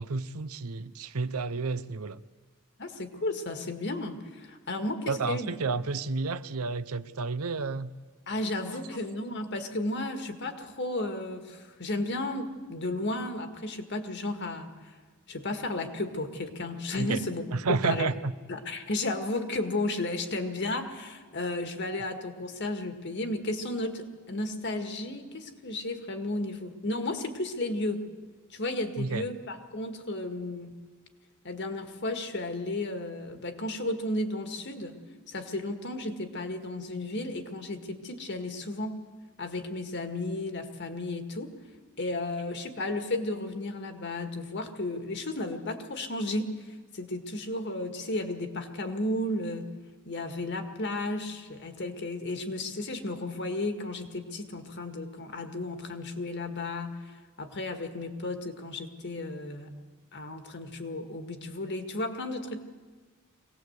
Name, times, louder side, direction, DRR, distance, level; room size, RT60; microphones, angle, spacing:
voice 1, 0.0-2.2 5.1-7.9 17.0-17.2 17.5-18.3 29.0-29.3, right 4 dB, 90° right, 0.8 m, -31 dB
voice 2, 2.8-5.6 8.3-14.7 15.3-17.4 17.8-18.1 18.5-28.0 28.5-30.8 31.4-35.0 35.3-39.0 39.4-41.5 42.0-46.5 46.9-49.7 50.1-57.0 57.4-59.7 60.1-62.6, left 2 dB, 55° left, 1.9 m, -33 dB
23.5 x 18.5 x 8.0 m
head